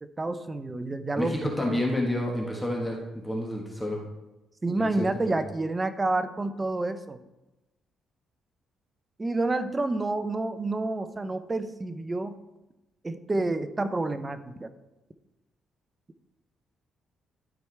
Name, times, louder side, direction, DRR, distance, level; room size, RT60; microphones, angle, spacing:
voice 1, 0.0-1.8 4.6-7.2 9.2-12.4 13.0-14.7, right 2 dB, 20° right, 11 dB, 0.6 m, -29 dB
voice 2, 1.2-4.0 4.8-5.4, left 1 dB, 10° left, -1 dB, 1.4 m, -30 dB
12.5 x 4.6 x 3.3 m, 1.0 s
cardioid pair, 90°, 0 cm